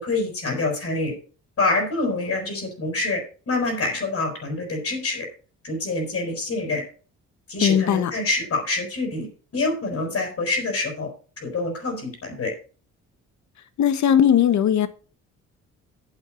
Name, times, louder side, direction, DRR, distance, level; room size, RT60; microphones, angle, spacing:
voice 1, 0.0-1.1 1.6-5.3 5.6-6.8 7.5-9.3 9.5-11.1 11.4-12.5, left 3 dB, 50° left, 2 dB, 5.1 m, -26 dB
voice 2, 7.6-8.1 13.8-14.9, left 9 dB, 70° left, 12 dB, 1.4 m, -18 dB
9.1 x 7.3 x 6.3 m, 0.38 s
cardioid pair, 90°, 30 cm